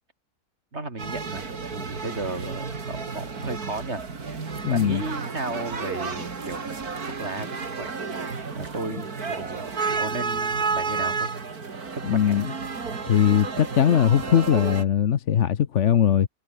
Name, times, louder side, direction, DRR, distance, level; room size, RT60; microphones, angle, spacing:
voice 1, 0.7-4.4 4.7-6.9 7.2-8.0 8.6-9.7 10.0-11.3 11.9-12.4, right 2 dB, 45° right, 4.2 m, -34 dB
sound 1, 1.0-14.8, right 4 dB, 75° right, 3.1 m, -31 dB
voice 2, 4.6-5.0 12.0-12.5 13.1-16.3, left 9 dB, 55° left, 1.1 m, -20 dB
omnidirectional pair, 1.6 m